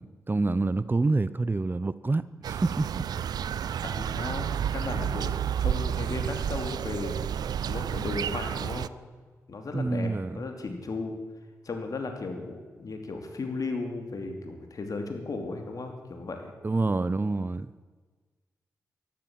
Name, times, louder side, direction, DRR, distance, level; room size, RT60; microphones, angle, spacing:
voice 1, 0.0-3.1 9.7-10.4 16.6-17.7, right 3 dB, 30° right, 0.7 m, -27 dB
sound 1, 2.4-8.9, right 9 dB, 75° right, 0.4 m, -31 dB
voice 2, 3.8-7.1 7.7-8.9 9.5-11.1 11.6-16.5, left 3 dB, 60° left, 2.8 m, -35 dB
13.0 x 12.0 x 7.5 m
supercardioid pair, 45°, 7 cm